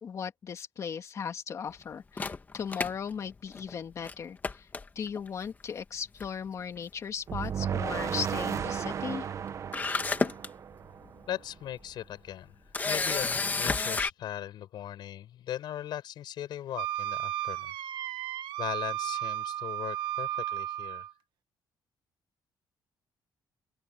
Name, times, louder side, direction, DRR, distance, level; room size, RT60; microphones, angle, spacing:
voice 1, 0.0-4.7 5.0-9.3, left 7 dB, 40° left, 2.3 m, -37 dB
Camera, 2.2-3.7 4.0-4.1 4.4-5.3 6.2-6.5 6.8-6.9 9.3-9.4 9.7-10.5 11.0-11.2 12.7-14.1, left 4 dB, 20° left, 1.6 m, -30 dB
sound 1, 7.3-11.4, right 8 dB, 40° right, 0.8 m, -34 dB
voice 2, 11.3-12.5 12.8-17.7 18.6-21.0, left 11 dB, 70° left, 6.2 m, -39 dB
Wind instrument woodwind instrument, 16.7-21.1, right 12 dB, 90° right, 1.4 m, -34 dB
cardioid pair, 160°, 8 cm